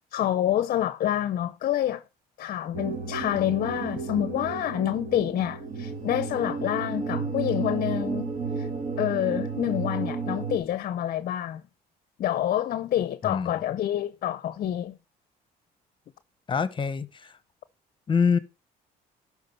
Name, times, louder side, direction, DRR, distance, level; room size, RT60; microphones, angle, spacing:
voice 1, 0.1-2.0 2.4-8.7 9.0-11.6 12.2-15.0, left 12 dB, 55° left, 0.6 m, -27 dB
sound 1, 2.7-10.6, right 4 dB, 50° right, 2.6 m, -32 dB
voice 2, 13.2-13.6 16.5-17.3 18.1-18.4, left 6 dB, 30° left, 1.0 m, -25 dB
12.0 x 4.9 x 5.4 m
cardioid pair, 110°, 17 cm